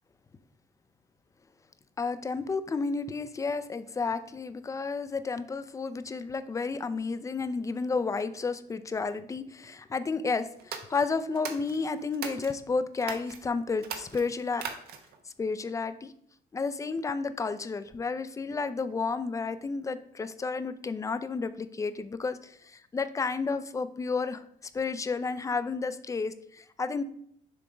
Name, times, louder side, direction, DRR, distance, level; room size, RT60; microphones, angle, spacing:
voice 1, 2.0-14.6 15.4-16.1 16.5-24.4 24.7-27.0, left 4 dB, 20° left, 12 dB, 0.5 m, -31 dB
sound 1, 10.6-12.6 13.0-13.4 13.8-15.2, right 6 dB, 70° right, 1.0 m, -40 dB
6.9 x 3.4 x 5.0 m, 0.69 s
cardioid pair, 110°, 17 cm